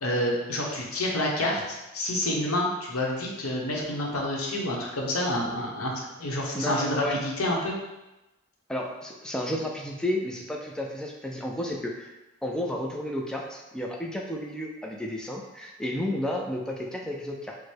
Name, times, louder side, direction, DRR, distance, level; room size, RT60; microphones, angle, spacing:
voice 1, 0.0-7.7, left 1 dB, 85° left, -1 dB, 1.0 m, -28 dB
voice 2, 6.5-7.2 8.7-12.1 12.4-17.6, left 1 dB, 5° left, -1 dB, 0.4 m, -32 dB
4.7 x 2.1 x 4.4 m, 1.0 s
head